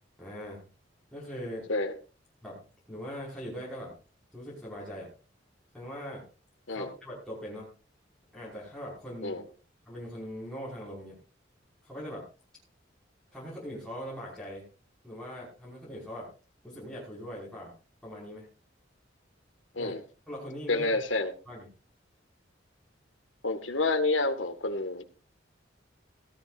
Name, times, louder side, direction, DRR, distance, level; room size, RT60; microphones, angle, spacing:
voice 1, 0.2-0.6 1.1-1.7 2.4-3.9 4.3-5.1 5.7-6.2 6.7-7.7 8.3-9.4 9.9-11.2 11.8-12.3 13.3-14.7 15.0-16.3 16.6-17.7 18.0-18.5 19.7-19.9 20.3-21.0 21.5-21.7, equal, 5° left, -7 dB, 5.6 m, -41 dB
voice 2, 20.7-21.3 23.4-25.0, left 2 dB, 85° left, 7 dB, 1.9 m, -28 dB
17.0 x 14.0 x 2.6 m, 0.34 s
head